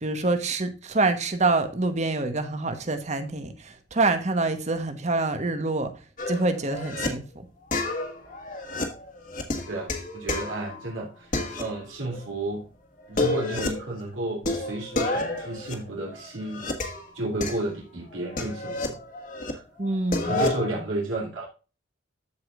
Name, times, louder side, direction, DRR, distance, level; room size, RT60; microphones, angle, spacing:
voice 1, 0.0-5.9 6.3-7.4 19.8-20.4, right 3 dB, 35° right, 1.1 m, -26 dB
sound 1, 6.2-7.1 7.7-10.9 11.3-12.2 12.5-12.6 13.0-13.9 14.4-17.1 17.4-19.5 19.8-20.7, left 2 dB, 40° left, 1.6 m, -30 dB
voice 2, 9.7-12.6 13.1-16.6 17.1-19.0 20.2-21.5, right 2 dB, 75° right, 3.0 m, -32 dB
14.0 x 5.0 x 2.4 m
head